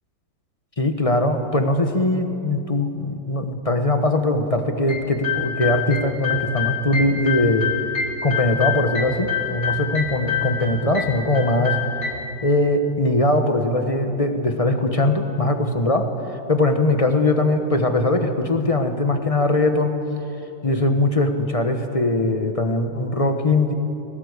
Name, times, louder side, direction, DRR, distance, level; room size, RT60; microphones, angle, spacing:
voice 1, 0.8-7.7 8.2-11.8 12.4-16.1 16.5-20.0 20.6-23.7, left 2 dB, 20° left, 6 dB, 1.0 m, -21 dB
sound 1, 4.9-12.1, left 8 dB, 80° left, 3.2 m, -27 dB
20.5 x 18.0 x 8.2 m, 2.8 s
omnidirectional pair, 2.1 m